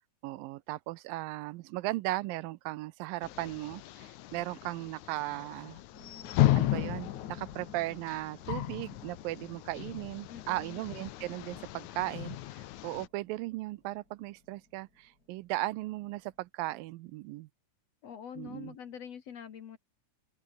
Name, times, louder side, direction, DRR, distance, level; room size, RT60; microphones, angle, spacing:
voice 1, 0.2-5.8 6.5-17.5 18.4-18.8, right 18 dB, 80° right, 2.3 m, -37 dB
sound 1, 3.2-13.1, left 14 dB, 70° left, 2.0 m, -34 dB
sound 2, 5.9-16.5, left 2 dB, 25° left, 7.7 m, -59 dB
voice 2, 10.3-10.8 18.0-19.8, left 8 dB, 55° left, 2.4 m, -45 dB
open air
omnidirectional pair, 4.1 m